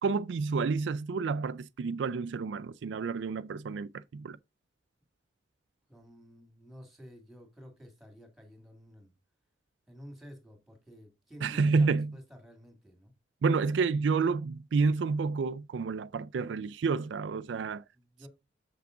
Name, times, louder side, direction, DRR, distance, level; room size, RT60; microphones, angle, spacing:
voice 1, 0.0-4.4 11.4-12.1 13.4-17.8, right 4 dB, 75° right, 0.4 m, -29 dB
voice 2, 5.9-9.1 9.9-13.1 18.0-18.3, equal, ahead, 2.0 m, -51 dB
7.1 x 5.9 x 3.7 m
head